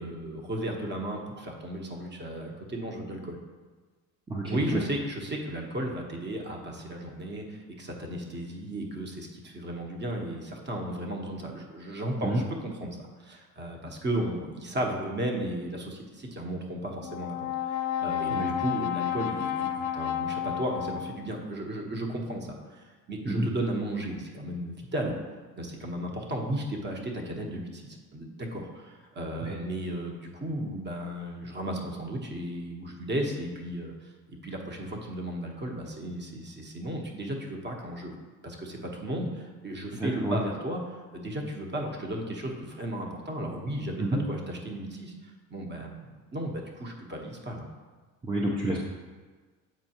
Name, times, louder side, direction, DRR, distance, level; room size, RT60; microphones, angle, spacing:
voice 1, 0.0-3.4 4.5-25.1 25.5-38.1 38.4-47.7, right 1 dB, 30° right, 1 dB, 1.2 m, -35 dB
voice 2, 4.3-4.8 12.2-12.4 18.3-18.5 23.2-23.5 29.4-29.5 39.9-40.4 44.0-44.2 48.2-48.8, right 1 dB, 15° right, -3 dB, 0.8 m, -29 dB
Brass instrument, 17.0-21.4, left 10 dB, 55° left, 0.5 m, -31 dB
7.7 x 4.4 x 3.0 m, 1.4 s
supercardioid pair, 90°, 37 cm